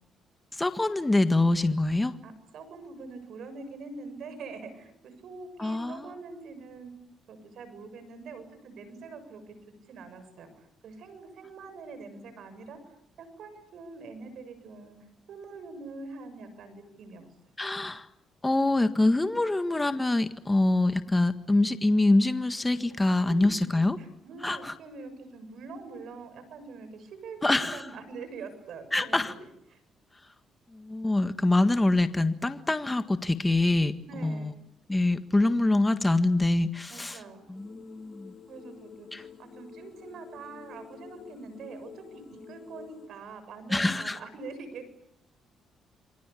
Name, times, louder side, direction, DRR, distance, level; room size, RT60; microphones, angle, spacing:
voice 1, 0.5-2.1 5.6-6.1 17.6-18.1 18.4-24.0 24.4-24.7 27.4-27.8 28.9-29.3 30.7-34.5 34.9-37.2 37.5-38.3 39.1-39.2 43.7-44.2, left 2 dB, 15° left, 10 dB, 1.6 m, -25 dB
voice 2, 2.2-6.9 7.3-9.5 9.9-15.0 15.3-17.3 23.3-23.4 24.0-29.8 34.0-34.6 36.9-37.4 38.5-44.9, right 4 dB, 70° right, 10 dB, 7.2 m, -44 dB
sound 1, 37.5-43.1, left 7 dB, 60° left, 3.3 m, -49 dB
28.5 x 24.0 x 8.5 m, 0.74 s
cardioid pair, 90°, 0 cm